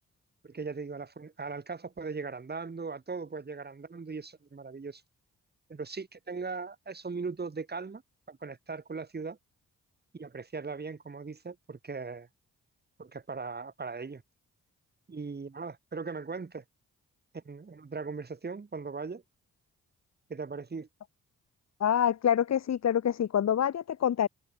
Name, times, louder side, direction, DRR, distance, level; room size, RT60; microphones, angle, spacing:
voice 1, 0.4-5.0 5.7-8.0 8.3-9.4 10.1-12.3 13.0-14.2 15.1-16.6 17.3-19.2 20.3-20.9, right 4 dB, 30° right, 1.3 m, -39 dB
voice 2, 21.8-24.3, left 9 dB, 50° left, 0.8 m, -26 dB
supercardioid pair, 50°, 34 cm